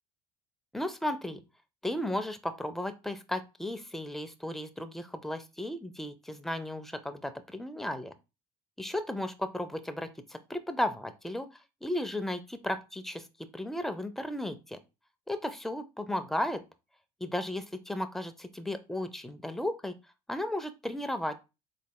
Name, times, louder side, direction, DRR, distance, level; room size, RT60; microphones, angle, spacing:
voice 1, 0.7-1.4 1.8-8.1 8.8-11.5 11.8-14.8 15.3-16.6 17.2-19.9 20.3-21.3, left 1 dB, ahead, 10 dB, 0.5 m, -34 dB
4.0 x 3.3 x 2.2 m, 0.27 s
supercardioid pair, 80°, 17 cm